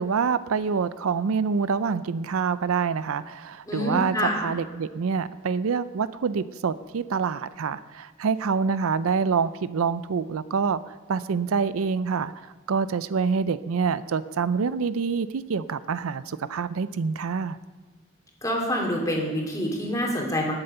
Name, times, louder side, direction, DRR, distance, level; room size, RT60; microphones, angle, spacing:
voice 1, 0.0-12.3 12.7-17.6, right 5 dB, 80° right, 15 dB, 0.5 m, -26 dB
voice 2, 3.7-4.5 18.4-20.6, equal, 15° left, -1 dB, 2.6 m, -27 dB
20.0 x 7.8 x 5.6 m, 1.4 s
head